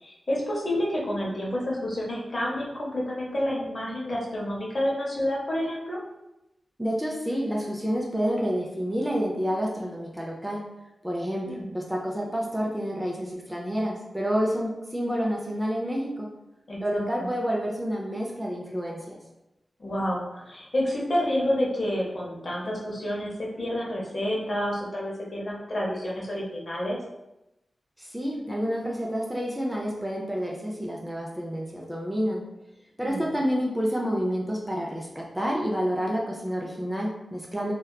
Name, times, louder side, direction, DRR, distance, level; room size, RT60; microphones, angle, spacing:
voice 1, 0.0-6.0 11.4-11.7 16.7-17.3 19.8-27.0 33.0-33.3, left 1 dB, 45° left, -4 dB, 0.6 m, -29 dB
voice 2, 6.8-10.6 11.0-16.3 16.8-19.2 28.0-32.4 33.0-37.7, equal, 5° right, -2 dB, 0.3 m, -29 dB
2.7 x 2.1 x 2.2 m, 0.92 s
wide cardioid pair, 110°, 0 cm